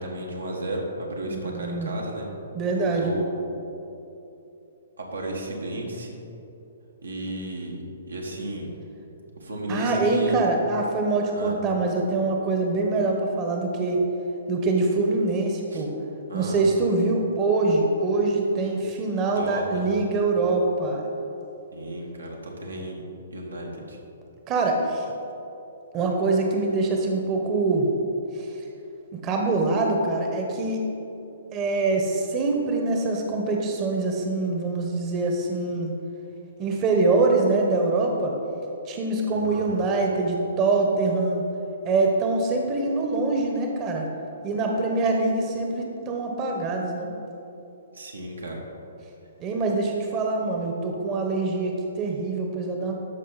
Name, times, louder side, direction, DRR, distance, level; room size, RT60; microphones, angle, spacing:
voice 1, 0.0-2.3 2.9-3.3 5.0-6.2 7.0-8.7 9.4-10.5 11.3-11.5 15.7-15.8 16.3-16.6 19.4-20.0 21.7-23.0 23.3-24.0 39.4-39.7 47.9-48.6, right 1 dB, 85° right, -1 dB, 1.7 m, -33 dB
voice 2, 1.3-1.9 2.5-3.1 9.7-14.0 14.5-15.9 16.3-21.1 24.5-25.1 25.9-27.9 28.3-28.5 29.2-30.8 31.5-35.9 36.6-38.3 38.9-41.4 41.8-44.1 44.4-47.1 49.4-52.9, right 3 dB, 30° right, 1 dB, 1.1 m, -24 dB
13.0 x 5.4 x 4.1 m, 3.0 s
figure-of-eight pair, 125°, 0 cm